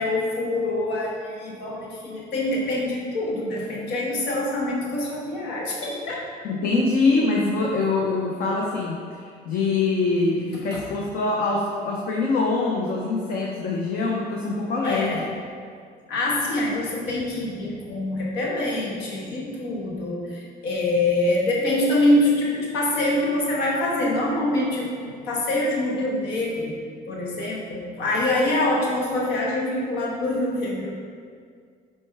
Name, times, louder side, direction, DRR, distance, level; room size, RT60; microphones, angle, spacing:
voice 1, 0.0-6.2 10.7-10.8 14.8-15.3 16.1-26.8 27.1-30.9, left 1 dB, 90° left, -4 dB, 1.2 m, -25 dB
voice 2, 6.4-15.2, left 3 dB, 60° left, -2 dB, 0.8 m, -24 dB
7.7 x 4.4 x 3.4 m, 2.1 s
cardioid pair, 110°, 17 cm